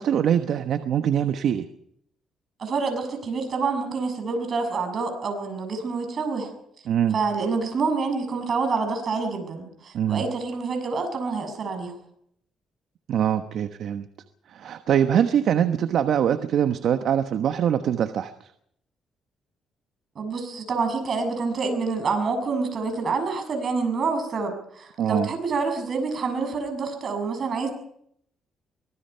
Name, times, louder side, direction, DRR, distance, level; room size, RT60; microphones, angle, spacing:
voice 1, 0.0-1.7 6.9-7.2 9.9-10.2 13.1-14.1 14.5-18.3 25.0-25.3, right 9 dB, 70° right, 9 dB, 1.1 m, -23 dB
voice 2, 2.6-6.5 7.1-12.0 20.2-27.7, right 4 dB, 50° right, 6 dB, 7.1 m, -27 dB
24.0 x 19.5 x 5.7 m, 0.70 s
cardioid pair, 90°, 0 cm